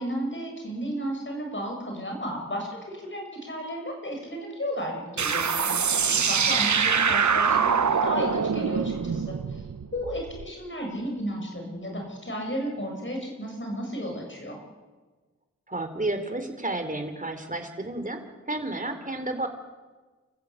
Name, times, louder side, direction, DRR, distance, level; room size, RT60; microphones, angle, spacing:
voice 1, 0.0-9.6 9.9-14.6, equal, 40° left, 1 dB, 6.8 m, -33 dB
sound 1, 5.2-10.5, right 6 dB, 75° right, 1.0 m, -24 dB
voice 2, 15.7-18.2 18.5-19.5, right 2 dB, 30° right, 6 dB, 3.4 m, -31 dB
30.0 x 14.5 x 8.5 m, 1.3 s
wide cardioid pair, 60°, 29 cm